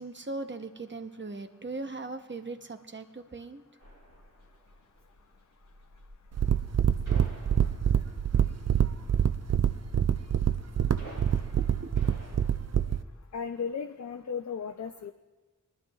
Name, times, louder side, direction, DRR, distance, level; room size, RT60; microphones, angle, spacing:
voice 1, 0.0-3.6 11.6-11.9, right 3 dB, 35° right, 7 dB, 0.8 m, -39 dB
sound 1, 3.8-12.5, right 1 dB, 75° right, 3.8 m, -51 dB
sound 2, 6.3-13.0, right 9 dB, 55° right, 0.4 m, -26 dB
voice 2, 13.3-15.1, left 6 dB, 60° left, 6 dB, 0.5 m, -35 dB
22.0 x 11.5 x 2.4 m, 1.2 s
wide cardioid pair, 70°, 32 cm